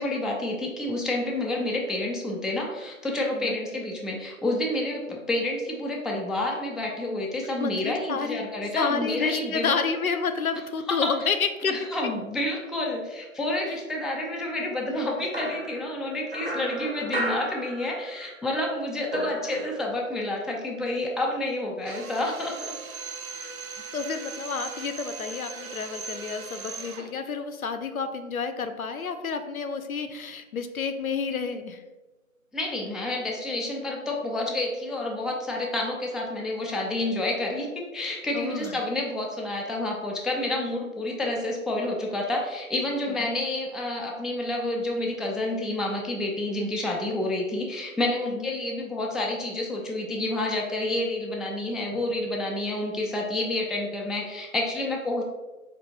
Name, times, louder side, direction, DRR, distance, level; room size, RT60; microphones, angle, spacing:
voice 1, 0.0-9.7 10.9-11.3 11.6-22.7 32.5-55.2, left 1 dB, ahead, -1 dB, 0.3 m, -29 dB
voice 2, 7.6-8.4 8.8-11.7 23.9-31.8 38.3-38.8 43.2-43.3 48.3-48.5, left 5 dB, 80° left, 9 dB, 0.5 m, -30 dB
sound 1, 15.3-18.4 18.6-20.1, right 1 dB, 50° right, 0.6 m, -34 dB
Drill, 21.8-27.1, right 5 dB, 90° right, 0.5 m, -39 dB
4.4 x 2.4 x 2.8 m, 1.2 s
figure-of-eight pair, 165°, 41 cm